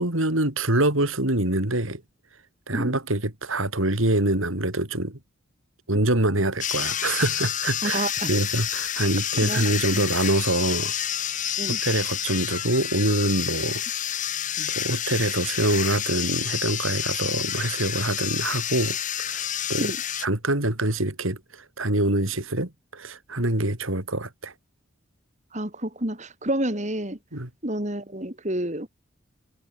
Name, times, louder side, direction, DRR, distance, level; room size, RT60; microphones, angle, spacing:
voice 1, 0.0-2.0 2.7-5.2 5.9-10.9 11.6-13.8 14.6-19.9 20.2-24.5 27.3-27.5, right 1 dB, 75° right, 4.3 m, -25 dB
sound 1, 6.6-20.3, left 10 dB, 35° left, 3.0 m, -29 dB
voice 2, 7.8-8.3 9.4-9.7 9.9-10.0 11.6-11.8 19.8-20.0 25.5-27.2 27.6-28.9, right 1 dB, 35° right, 3.5 m, -29 dB
head